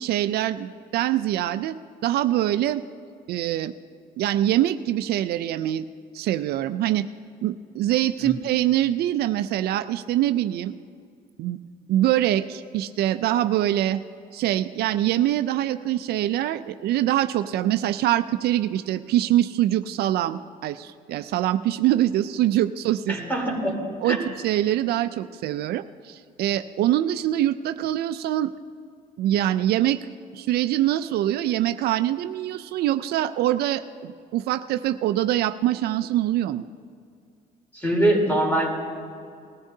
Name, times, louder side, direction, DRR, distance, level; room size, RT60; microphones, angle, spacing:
voice 1, 0.0-1.7 2.0-2.8 3.3-3.7 4.2-5.8 6.1-7.1 7.4-10.7 11.4-11.6 11.9-14.0 14.3-23.2 24.0-28.5 29.2-30.0 30.3-36.7, right 13 dB, 70° right, 11 dB, 0.4 m, -24 dB
voice 2, 23.1-23.7 24.0-24.2 37.7-38.7, right 1 dB, 10° left, -1 dB, 3.5 m, -23 dB
20.0 x 14.0 x 2.7 m, 2.3 s
cardioid pair, 110°, 17 cm